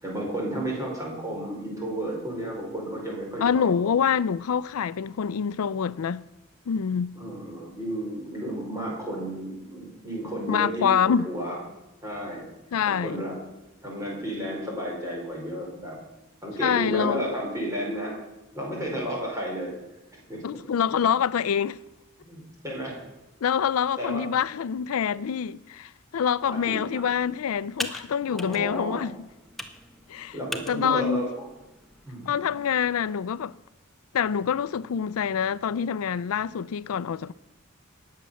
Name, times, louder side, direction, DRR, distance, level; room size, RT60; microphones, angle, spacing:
voice 1, 0.0-3.7 7.1-11.6 12.0-12.4 12.9-13.3 13.8-16.0 16.4-18.2 18.5-19.7 20.3-20.4 22.2-23.0 24.0-24.2 26.4-27.0 28.3-29.0 30.3-31.2 32.1-32.2, right 1 dB, 15° right, 4.8 m, -32 dB
voice 2, 3.4-6.2 6.7-7.1 10.5-11.3 12.7-13.2 16.6-17.2 20.4-21.8 23.4-29.2 30.1-30.4 30.7-31.3 32.3-33.5 34.1-37.3, left 7 dB, 90° left, 0.4 m, -26 dB
Computer keyboard, 26.4-33.1, left 1 dB, ahead, 0.9 m, -42 dB
18.5 x 7.5 x 7.0 m
head